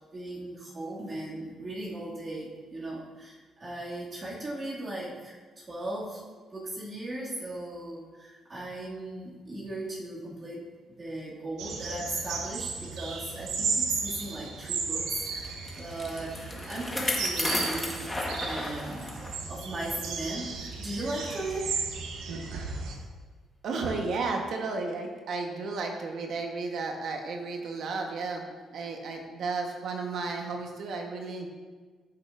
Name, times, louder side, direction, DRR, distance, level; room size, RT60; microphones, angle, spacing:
voice 1, 0.1-6.3 6.5-10.7 11.0-18.1 18.4-19.1 19.5-21.9, right 1 dB, 35° right, -7 dB, 2.4 m, -37 dB
sound 1, 11.6-23.0, right 5 dB, 90° right, 1.0 m, -35 dB
Bicycle, 15.4-19.4 19.8-19.9 20.7-20.8, left 1 dB, 15° left, 1.5 m, -33 dB
voice 2, 23.6-28.5 28.7-31.5, right 3 dB, 70° right, 2 dB, 1.2 m, -33 dB
13.5 x 6.4 x 2.6 m, 1.5 s
cardioid pair, 90°, 0 cm